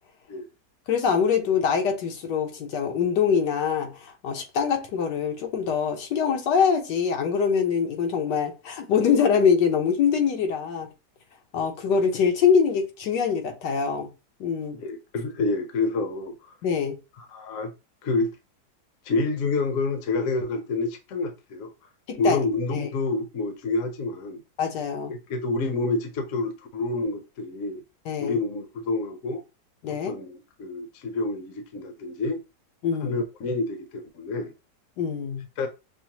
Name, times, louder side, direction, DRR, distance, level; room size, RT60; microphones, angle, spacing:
voice 1, 0.9-10.9 11.5-14.1 14.4-14.8 16.6-17.0 22.1-22.4 22.7-22.9 24.6-25.1 28.1-28.4 29.8-30.2 32.8-33.2 35.0-35.4, left 6 dB, 85° left, 1.5 m, -24 dB
voice 2, 14.7-16.5 17.2-17.7 18.0-18.3 19.0-21.7 22.2-24.4 25.1-27.8 28.2-29.4 29.9-32.4 33.0-34.5 35.6-35.7, left 3 dB, 60° left, 1.0 m, -28 dB
6.0 x 2.1 x 2.9 m
omnidirectional pair, 1.8 m